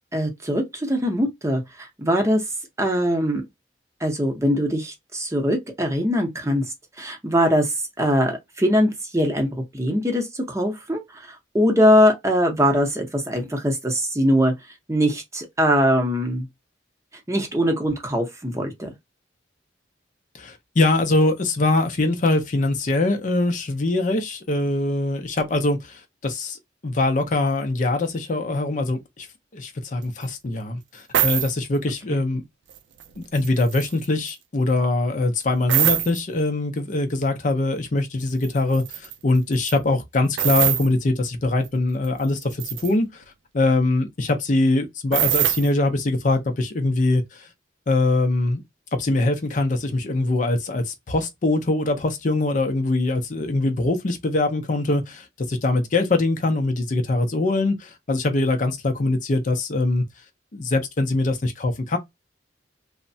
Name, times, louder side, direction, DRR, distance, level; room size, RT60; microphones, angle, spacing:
voice 1, 0.1-2.4 2.8-3.4 4.0-14.5 14.9-16.5 17.3-18.9 32.1-32.2, equal, 15° right, 0.7 m, -22 dB
voice 2, 20.4-26.6 26.8-29.3 29.5-32.4 33.2-43.2 43.5-47.5 47.9-48.6 48.9-60.0 60.5-62.0, left 2 dB, 45° left, 0.5 m, -23 dB
sound 1, 30.2-30.3 31.1-31.5 32.7-33.0 33.3-34.3 35.7-36.2 38.4-38.5 38.7-39.1 39.5-39.8 40.4-40.9 41.6-41.7 42.0-42.9 45.1-45.7, right 11 dB, 80° right, 0.4 m, -22 dB
3.1 x 2.1 x 2.6 m
head